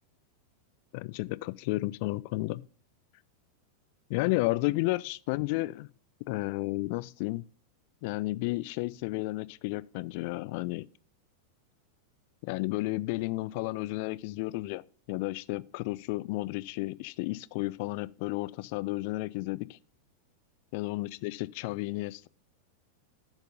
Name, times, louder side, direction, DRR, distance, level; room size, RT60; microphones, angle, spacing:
voice 1, 0.9-2.7 4.1-5.9 6.3-7.4 8.0-10.9 12.4-14.8 15.1-19.8 20.7-22.3, left 21 dB, 45° left, 0.3 m, -32 dB
8.8 x 4.5 x 5.3 m
figure-of-eight pair, 90°, 0 cm